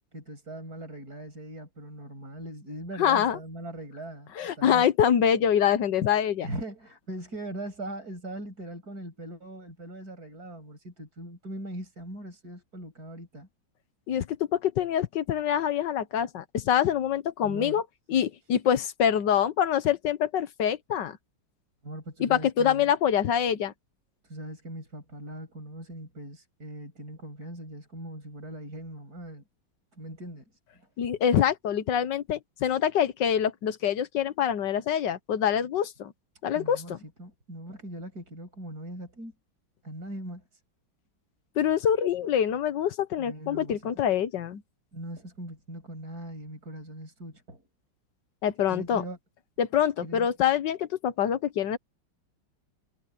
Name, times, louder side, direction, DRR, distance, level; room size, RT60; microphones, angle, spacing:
voice 1, 0.1-4.9 6.4-13.5 17.4-17.8 21.8-22.9 24.2-29.4 29.9-30.5 30.8-30.9 36.5-39.3 39.8-40.6 43.2-43.8 44.9-47.7 48.7-49.2 50.0-50.3, right 1 dB, 45° right, 7.6 m, -40 dB
voice 2, 3.0-3.4 4.4-6.5 14.1-17.8 18.1-21.2 22.2-23.7 31.0-36.1 36.4-37.0 41.6-44.6 48.4-49.0 49.6-51.8, left 9 dB, 65° left, 1.5 m, -25 dB
omnidirectional pair, 2.3 m